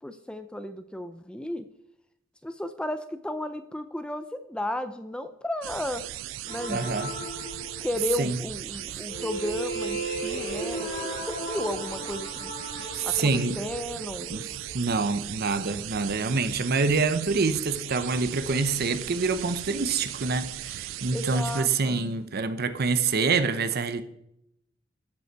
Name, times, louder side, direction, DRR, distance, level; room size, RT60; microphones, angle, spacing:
voice 1, 0.0-1.6 2.4-6.0 6.5-6.9 7.8-10.9 11.3-12.5 13.0-13.3 13.6-14.3 21.1-22.1, left 1 dB, 5° left, 0.4 m, -34 dB
sound 1, 5.6-21.6, right 14 dB, 70° right, 0.3 m, -38 dB
sound 2, 6.4-8.2 8.9-15.0, right 1 dB, 45° left, 3.9 m, -36 dB
voice 2, 6.7-7.1 8.2-8.4 12.9-13.6 14.3-24.0, right 4 dB, 50° right, 0.7 m, -26 dB
sound 3, 8.4-9.4 9.8-13.3 14.4-15.9 16.8-17.1 17.3-17.9 18.2-18.9 19.3-19.7 20.6-21.1, right 4 dB, 35° right, 2.2 m, -52 dB
12.5 x 5.3 x 4.6 m
head